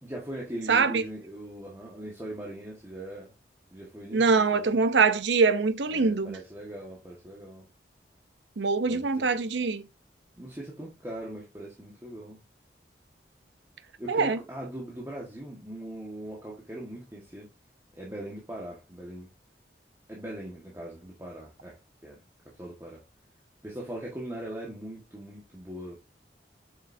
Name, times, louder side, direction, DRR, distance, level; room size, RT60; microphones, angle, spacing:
voice 1, 0.0-3.3 3.7-4.8 5.9-7.7 8.8-9.4 10.4-12.4 14.0-17.5 18.0-19.3 20.1-22.2 22.6-23.0 23.6-26.0, right 1 dB, 15° right, 1.5 m, -40 dB
voice 2, 0.7-1.0 4.1-6.4 8.6-9.8 14.1-14.4, right 4 dB, 85° right, 0.7 m, -23 dB
7.6 x 6.4 x 2.7 m
head